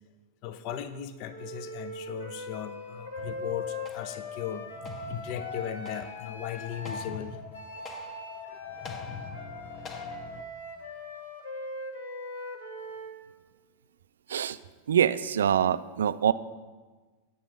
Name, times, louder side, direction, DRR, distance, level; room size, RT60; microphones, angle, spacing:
voice 1, 0.4-4.7 5.1-7.4, left 9 dB, 45° left, 12 dB, 0.5 m, -37 dB
Wind instrument woodwind instrument, 1.3-7.1 7.5-13.2, left 2 dB, 70° left, 1.3 m, -40 dB
sound 1, 3.2-10.4, left 5 dB, 25° left, 0.9 m, -44 dB
voice 2, 14.9-16.3, right 9 dB, 65° right, 15 dB, 0.3 m, -24 dB
8.7 x 6.8 x 5.7 m, 1.3 s
figure-of-eight pair, 90°, 0 cm